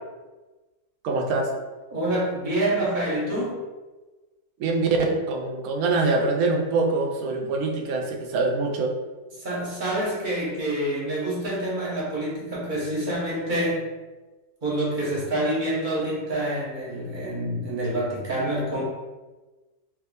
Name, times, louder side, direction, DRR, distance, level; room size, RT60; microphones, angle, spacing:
voice 1, 1.0-1.5 4.6-8.9, right 3 dB, 75° right, 1 dB, 1.0 m, -24 dB
voice 2, 1.9-3.6 9.4-13.9 14.6-18.8, right 1 dB, 40° right, -5 dB, 0.9 m, -27 dB
3.4 x 2.8 x 2.6 m, 1.2 s
omnidirectional pair, 1.6 m